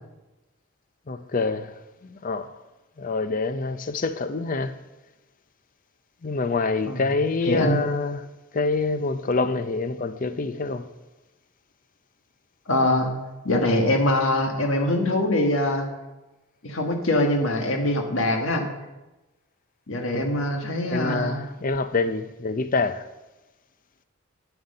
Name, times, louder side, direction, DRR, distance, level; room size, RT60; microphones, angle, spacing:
voice 1, 1.1-2.5 3.0-4.7 6.2-8.2 8.5-10.9 20.1-20.3 20.6-23.1, left 3 dB, 40° left, 0.5 m, -26 dB
voice 2, 7.5-7.8 12.7-13.1 13.4-15.9 16.6-18.7 19.9-21.5, left 1 dB, 65° left, 1.5 m, -23 dB
8.9 x 7.8 x 5.4 m
head